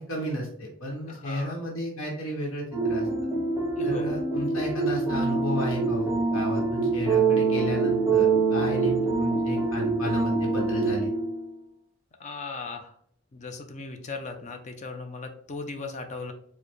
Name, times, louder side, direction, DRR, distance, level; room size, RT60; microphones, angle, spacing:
voice 1, 0.0-3.3 3.8-11.1, equal, 80° left, -1 dB, 1.0 m, -33 dB
voice 2, 1.1-1.6 3.8-4.1 8.8-8.9 12.2-12.9 13.3-16.3, left 3 dB, 35° left, 5 dB, 0.5 m, -37 dB
sound 1, 2.7-11.5, right 4 dB, 15° right, 0.6 m, -25 dB
4.6 x 2.1 x 3.0 m, 0.65 s
head